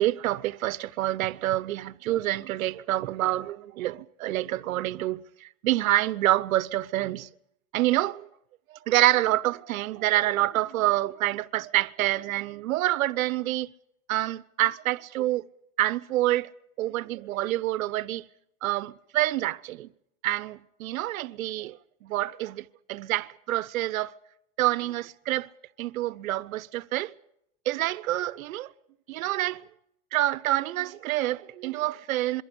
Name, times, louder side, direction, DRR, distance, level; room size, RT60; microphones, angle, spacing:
voice 1, 0.0-7.3 7.7-8.3 8.7-13.7 14.1-15.5 15.8-16.5 16.8-18.2 18.6-19.9 20.2-24.1 24.6-25.5 25.8-27.1 27.6-28.7 29.1-29.6 30.1-32.4, right 15 dB, 85° right, 1.1 m, -27 dB
27.0 x 23.0 x 5.4 m
supercardioid pair, 145°, 40 cm